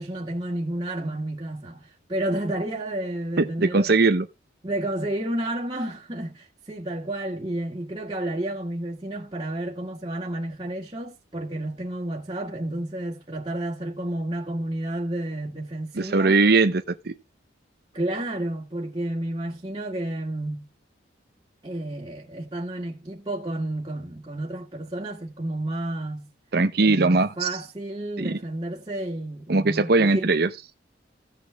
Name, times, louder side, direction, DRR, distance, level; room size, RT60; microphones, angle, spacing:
voice 1, 0.0-3.9 4.6-16.4 17.9-20.7 21.6-26.3 26.8-30.3, right 1 dB, 25° right, 1.9 m, -31 dB
voice 2, 3.4-4.2 16.0-17.1 26.5-27.5 28.2-28.4 29.5-30.5, right 3 dB, 55° right, 0.7 m, -20 dB
16.0 x 6.3 x 3.3 m
head